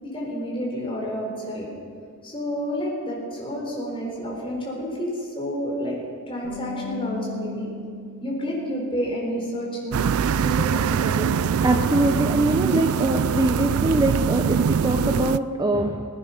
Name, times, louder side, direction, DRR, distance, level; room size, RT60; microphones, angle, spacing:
voice 1, 0.0-1.7 2.2-6.0 6.3-7.7 8.2-10.0 10.3-11.4, equal, 25° left, -3 dB, 4.1 m, -30 dB
Bass guitar, 6.4-12.7, left 4 dB, 70° left, 4.1 m, -40 dB
sound 1, 9.9-15.4, right 7 dB, 80° right, 0.4 m, -23 dB
voice 2, 11.6-16.1, right 1 dB, 20° right, 4 dB, 0.6 m, -23 dB
19.5 x 10.0 x 5.8 m, 2.2 s
head